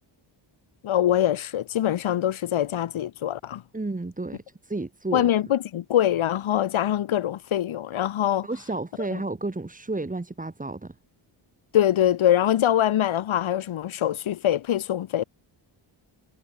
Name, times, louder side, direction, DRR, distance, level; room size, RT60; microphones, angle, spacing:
voice 1, 0.8-3.6 5.1-8.5 9.1-9.2 11.7-15.2, left 11 dB, 90° left, 4.6 m, -23 dB
voice 2, 3.7-5.3 8.4-10.9, right 2 dB, 15° right, 6.0 m, -32 dB
cardioid pair, 125°, 47 cm